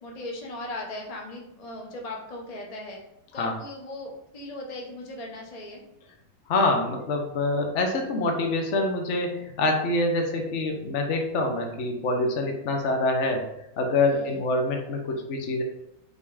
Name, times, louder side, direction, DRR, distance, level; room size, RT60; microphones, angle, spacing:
voice 1, 0.0-3.0 3.3-5.8 14.1-14.4, left 2 dB, 25° left, 0 dB, 1.0 m, -38 dB
voice 2, 6.5-13.5 13.8-15.6, left 2 dB, 45° left, 3 dB, 1.2 m, -25 dB
5.5 x 4.8 x 4.9 m, 0.81 s
omnidirectional pair, 2.1 m